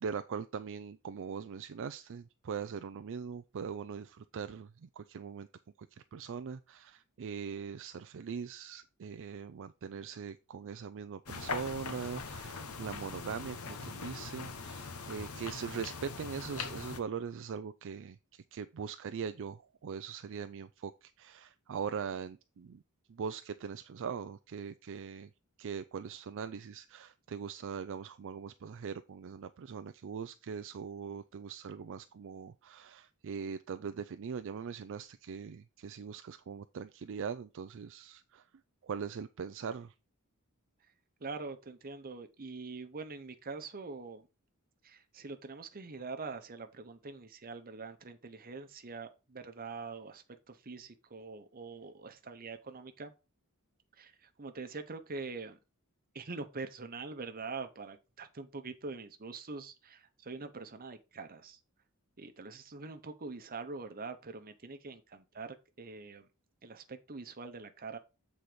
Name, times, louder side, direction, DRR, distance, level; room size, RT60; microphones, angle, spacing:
voice 1, 0.0-5.5 5.9-22.8 23.1-25.3 25.6-38.5 38.8-39.9, right 6 dB, 60° right, 0.4 m, -41 dB
sound 1, 11.3-17.0, left 4 dB, 80° left, 1.1 m, -41 dB
voice 2, 41.2-44.3 44.8-53.1 54.0-55.6 56.1-61.6 62.2-66.3 66.6-68.0, right 4 dB, 40° right, 0.9 m, -44 dB
7.8 x 4.1 x 5.0 m
head